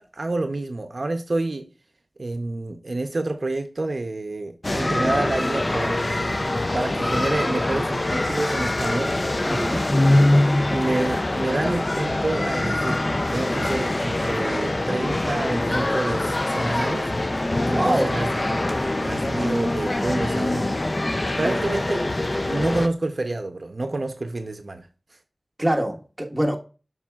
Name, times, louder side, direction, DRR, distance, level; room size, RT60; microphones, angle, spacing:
voice 1, 0.0-1.7 2.2-9.2 10.7-13.0 13.3-17.4 17.7-18.7 19.0-20.8 21.4-22.1 22.5-24.9, right 2 dB, 65° right, 0.6 m, -28 dB
sound 1, 4.6-22.9, left 1 dB, 40° left, 0.4 m, -24 dB
voice 2, 9.5-9.8 17.6-18.1 21.4-21.6 25.6-26.6, right 1 dB, 15° right, 1.3 m, -24 dB
7.3 x 5.6 x 2.3 m
wide cardioid pair, 65°, 0 cm